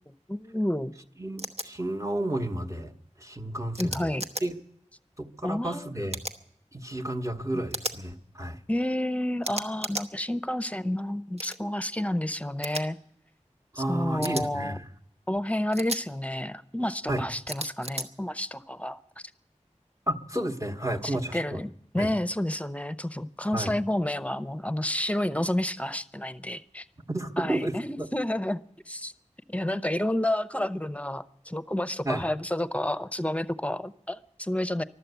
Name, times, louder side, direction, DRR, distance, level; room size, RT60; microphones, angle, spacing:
voice 1, 0.3-0.9 3.8-4.2 5.4-5.9 7.5-7.6 8.7-13.0 13.8-14.8 15.3-19.0 21.0-26.8 27.4-29.1 29.5-34.8, left 1 dB, 10° left, 14 dB, 0.7 m, -30 dB
voice 2, 1.2-2.9 3.2-4.1 4.4-4.6 5.2-6.2 6.7-8.6 13.7-14.9 17.1-17.3 20.1-21.6 21.9-22.1 23.5-23.7 27.1-28.1 29.7-29.8 32.0-32.2, right 1 dB, 25° right, 3 dB, 1.1 m, -31 dB
sound 1, 1.4-1.7 3.7-4.4 6.1-6.4 7.7-8.0 9.4-10.1 11.4-11.6 12.6-12.8 14.2-14.4 15.7-16.0 17.5-18.1, right 1 dB, 60° right, 1.1 m, -34 dB
14.0 x 12.5 x 8.1 m, 0.71 s
wide cardioid pair, 45°, 12 cm